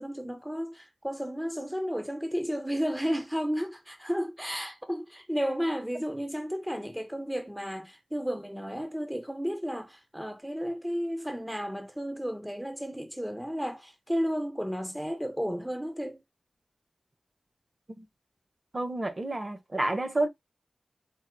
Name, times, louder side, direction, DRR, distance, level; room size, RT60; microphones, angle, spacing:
voice 1, 0.0-16.2, equal, 5° right, 0.6 m, -33 dB
voice 2, 18.7-20.3, right 2 dB, 35° right, 0.9 m, -29 dB
4.5 x 2.0 x 4.4 m
wide cardioid pair, 70°, 0 cm